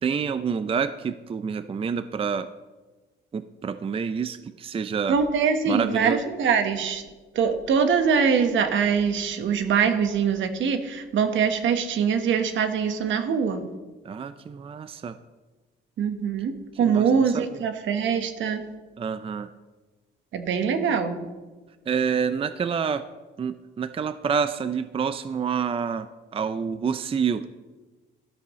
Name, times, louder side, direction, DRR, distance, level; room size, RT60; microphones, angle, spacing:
voice 1, 0.0-2.5 3.3-5.2 5.7-6.2 14.0-15.2 16.8-17.7 19.0-19.5 21.9-23.1 23.4-27.5, right 6 dB, 30° right, 12 dB, 0.4 m, -28 dB
voice 2, 5.1-7.0 7.3-13.6 16.0-18.6 20.3-21.3, right 6 dB, 75° right, 8 dB, 1.2 m, -23 dB
13.0 x 12.5 x 3.1 m, 1.3 s
cardioid pair, 90°, 20 cm